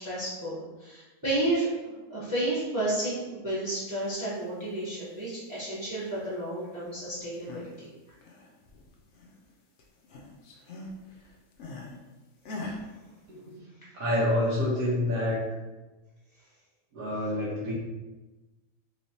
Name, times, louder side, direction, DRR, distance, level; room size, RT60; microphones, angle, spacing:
voice 1, 0.0-7.9, right 1 dB, 15° right, -8 dB, 0.9 m, -31 dB
sound 1, 7.2-7.8 8.1-9.5 9.8-12.0 12.4-12.8, left 2 dB, 65° left, 0.8 m, -41 dB
voice 2, 13.3-13.6 14.0-15.4 16.9-17.7, left 1 dB, 90° right, -7 dB, 1.3 m, -27 dB
3.3 x 3.1 x 2.7 m, 1.1 s
omnidirectional pair, 1.5 m